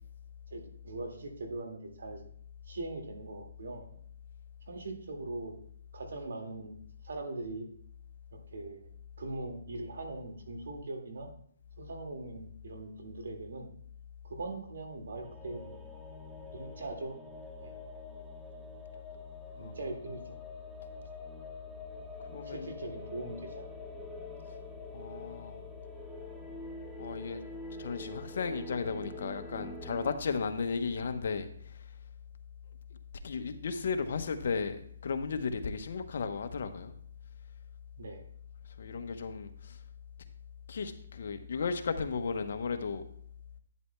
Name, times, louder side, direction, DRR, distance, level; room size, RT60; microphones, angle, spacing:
voice 1, 0.5-2.2 2.7-3.9 4.7-5.5 5.9-6.8 7.0-7.7 8.3-8.8 9.2-11.3 11.8-13.7 14.2-15.9 16.5-17.2 17.6-17.7 19.6-20.2 22.4-23.7 38.0-38.2, right 2 dB, 70° right, 3 dB, 2.1 m, -41 dB
sound 1, 15.2-30.2, left 2 dB, ahead, 0.8 m, -46 dB
voice 2, 22.3-22.7 24.9-25.6 27.0-27.4 27.8-31.5 33.2-36.9 38.8-39.8 40.7-43.0, left 5 dB, 60° left, 8 dB, 0.9 m, -35 dB
11.0 x 9.3 x 2.3 m, 0.66 s
hypercardioid pair, 150°, 0 cm